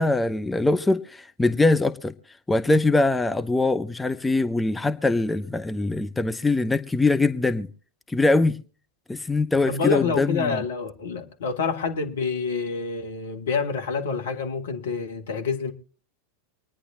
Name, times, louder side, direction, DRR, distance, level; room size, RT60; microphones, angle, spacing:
voice 1, 0.0-2.1 2.5-7.7 8.1-8.6 9.1-10.6, left 2 dB, 10° left, 0.6 m, -22 dB
voice 2, 9.7-15.7, left 5 dB, 60° left, 1.7 m, -27 dB
26.0 x 10.0 x 2.7 m
figure-of-eight pair, 90°, 0 cm